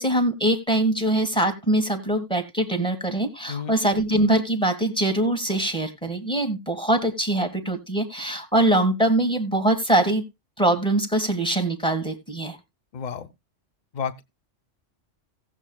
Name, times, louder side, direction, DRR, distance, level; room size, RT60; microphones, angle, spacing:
voice 1, 0.0-10.2 10.6-12.6, right 1 dB, 5° left, 1.6 m, -23 dB
voice 2, 12.9-13.3 13.9-14.2, left 7 dB, 45° left, 0.8 m, -31 dB
17.5 x 7.5 x 2.3 m
omnidirectional pair, 1.3 m